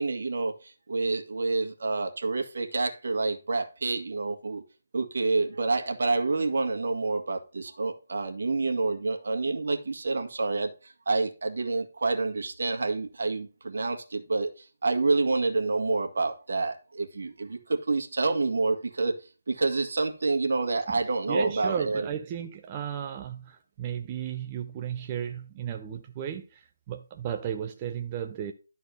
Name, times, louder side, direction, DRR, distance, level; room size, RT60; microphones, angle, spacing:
voice 1, 0.0-4.6 4.9-10.7 11.0-14.5 14.8-19.2 19.5-22.1, right 3 dB, 65° right, 1.8 m, -28 dB
voice 2, 20.9-28.5, right 9 dB, 20° right, 0.5 m, -34 dB
12.0 x 4.2 x 5.3 m
hypercardioid pair, 165°, 0 cm